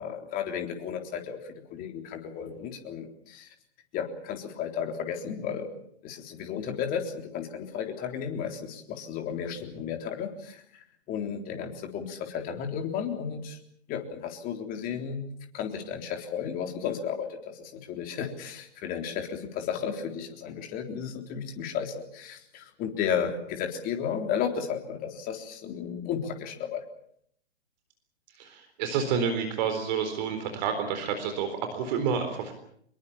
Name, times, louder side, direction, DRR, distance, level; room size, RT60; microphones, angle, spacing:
voice 1, 0.0-1.4 1.7-3.5 3.9-5.7 6.0-10.6 11.1-13.6 13.9-15.3 15.5-26.8, left 7 dB, 25° left, 4 dB, 3.7 m, -33 dB
voice 2, 28.3-32.5, right 6 dB, 40° right, 7 dB, 4.0 m, -29 dB
25.0 x 22.0 x 7.2 m, 0.68 s
figure-of-eight pair, 125°, 33 cm